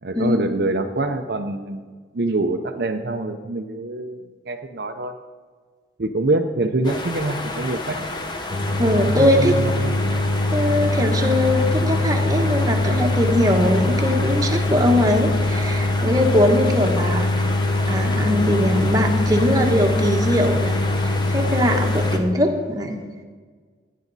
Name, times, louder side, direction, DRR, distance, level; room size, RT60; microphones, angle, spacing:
voice 1, 0.0-1.9 2.1-4.2 4.5-5.1 6.0-8.1 9.0-10.1, right 2 dB, 55° right, 5 dB, 0.6 m, -25 dB
sound 1, 6.8-22.2, left 2 dB, 25° left, 1.0 m, -31 dB
sound 2, 8.5-22.2, left 2 dB, 60° left, 1.2 m, -22 dB
voice 2, 8.8-9.5 10.5-17.5 17.9-23.0, left 1 dB, 20° right, 2 dB, 1.2 m, -21 dB
16.5 x 9.2 x 4.0 m, 1.5 s
head